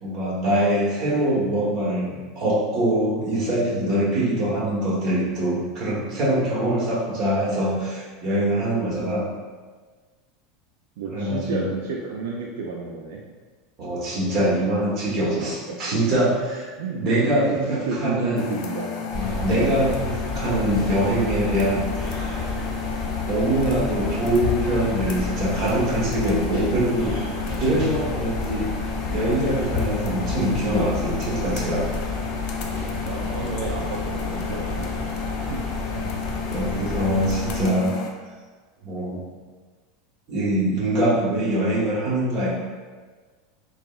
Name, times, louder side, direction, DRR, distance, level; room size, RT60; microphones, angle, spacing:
voice 1, 0.0-9.2 11.1-11.6 13.8-18.4 19.1-22.4 23.2-28.7 29.1-31.8 35.9-36.2 36.5-37.9 38.8-39.2 40.3-42.5, right 1 dB, 40° right, -7 dB, 1.1 m, -23 dB
voice 2, 11.0-13.2 15.7-16.1 16.8-18.9 27.3-28.2 32.6-35.1 35.5-35.6, right 4 dB, 80° right, -1 dB, 0.3 m, -32 dB
sound 1, 18.4-38.1, left 8 dB, 55° left, 0.3 m, -33 dB
sound 2, 19.1-37.7, left 2 dB, ahead, 1.2 m, -31 dB
sound 3, 22.4-22.5 23.8-23.9 24.4-25.7 26.2-26.8 27.8-27.9 29.1-29.2 29.7-31.1 31.6-32.1, left 8 dB, 30° left, 0.8 m, -34 dB
3.5 x 2.0 x 2.3 m, 1.4 s
supercardioid pair, 135°, 0 cm